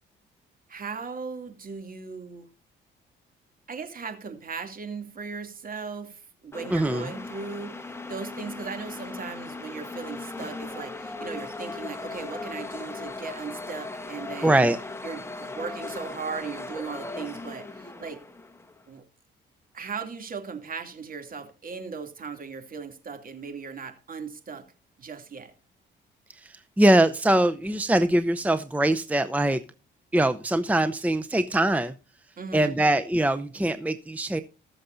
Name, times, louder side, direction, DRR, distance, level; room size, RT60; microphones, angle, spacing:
voice 1, 0.7-2.5 3.7-14.7 15.0-18.2 18.9-19.0 19.7-24.7 25.0-25.5 32.4-32.8, right 5 dB, 45° right, 2.7 m, -37 dB
sound 1, 6.5-18.8, left 3 dB, 10° left, 1.4 m, -38 dB
voice 2, 6.7-7.1 14.4-14.8 26.3-29.6 30.1-31.9 32.5-34.4, right 1 dB, 5° right, 0.7 m, -22 dB
20.0 x 6.9 x 2.6 m
cardioid pair, 90°, 20 cm